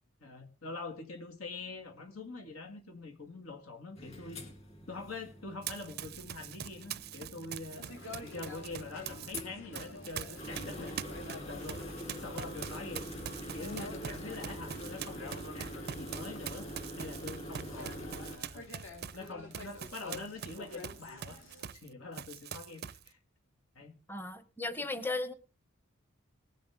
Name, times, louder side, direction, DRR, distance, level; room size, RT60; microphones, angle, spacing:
voice 1, 0.2-4.4 4.9-7.9 8.2-11.0 11.3-13.1 13.5-18.7 19.1-21.4 21.7-23.2 23.8-23.9, left 3 dB, 85° left, 3 dB, 2.2 m, -45 dB
sound 1, 4.0-18.4, equal, 30° left, 3.0 m, -45 dB
Run, 5.6-9.4 9.7-21.9 22.1-23.1, right 9 dB, 50° right, 0.5 m, -44 dB
sound 2, 7.8-21.7, left 3 dB, 60° left, 2.4 m, -49 dB
voice 2, 24.1-25.3, left 2 dB, 10° left, 13 dB, 0.8 m, -36 dB
19.5 x 7.8 x 3.7 m, 0.34 s
head